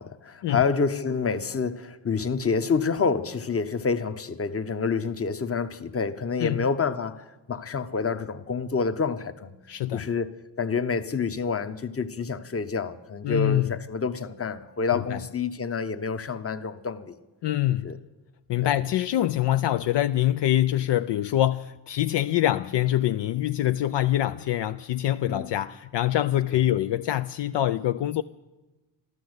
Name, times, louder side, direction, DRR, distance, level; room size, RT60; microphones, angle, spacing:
voice 1, 0.0-9.6 9.9-10.3 10.6-17.2 17.8-18.0 18.6-18.7 25.3-25.5 26.5-26.7, left 5 dB, 30° left, 1.0 m, -28 dB
voice 2, 9.7-10.1 13.2-13.7 15.1-15.2 17.4-17.9 18.5-28.2, left 13 dB, 65° left, 0.5 m, -24 dB
13.0 x 12.5 x 8.0 m
cardioid pair, 85°, 45 cm